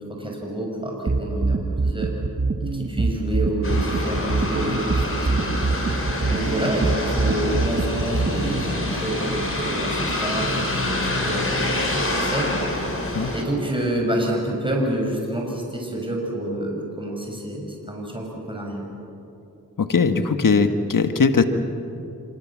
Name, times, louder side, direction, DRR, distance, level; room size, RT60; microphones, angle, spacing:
voice 1, 0.1-2.1 2.6-12.5 13.3-18.9, right 1 dB, 15° right, -1 dB, 6.3 m, -28 dB
sound 1, 1.1-8.6, right 3 dB, 40° right, 1.3 m, -23 dB
sound 2, 3.6-13.4, left 1 dB, 40° left, 5.4 m, -26 dB
voice 2, 19.8-21.4, left 5 dB, 65° left, 8 dB, 1.6 m, -19 dB
26.0 x 25.0 x 7.4 m, 2.8 s
cardioid pair, 40°, 35 cm